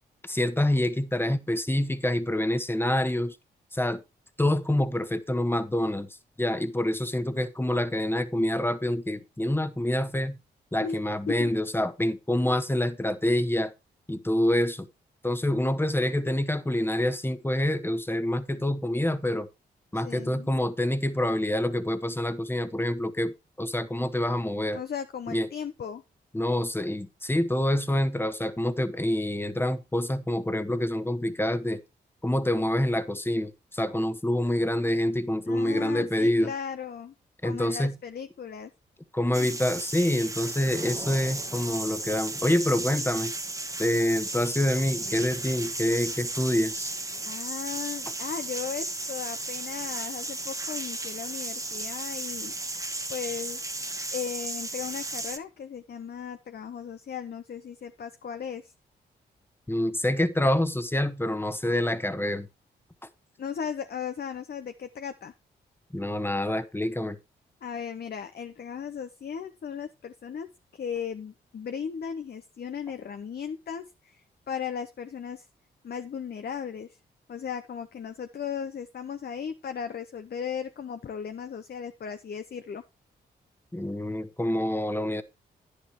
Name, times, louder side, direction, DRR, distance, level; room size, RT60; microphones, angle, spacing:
voice 1, 0.2-3.4 3.7-4.0 4.4-6.1 6.4-10.4 10.7-13.7 14.1-14.9 15.2-19.5 19.9-24.8 25.3-25.5 26.3-31.8 32.2-36.5 37.4-38.0 39.1-43.3 43.8-46.9 59.7-62.5 65.9-67.2 83.7-85.2, left 1 dB, 10° left, 1.2 m, -26 dB
voice 2, 19.9-20.5 24.7-26.0 35.5-37.1 37.4-38.7 47.2-52.5 53.1-53.8 54.1-58.7 63.4-65.3 67.6-75.5 75.8-77.0 77.3-82.8, left 7 dB, 50° left, 0.8 m, -36 dB
sound 1, 39.3-55.4, right 2 dB, 15° right, 1.4 m, -34 dB
10.0 x 9.9 x 3.1 m
supercardioid pair, 40°, 21 cm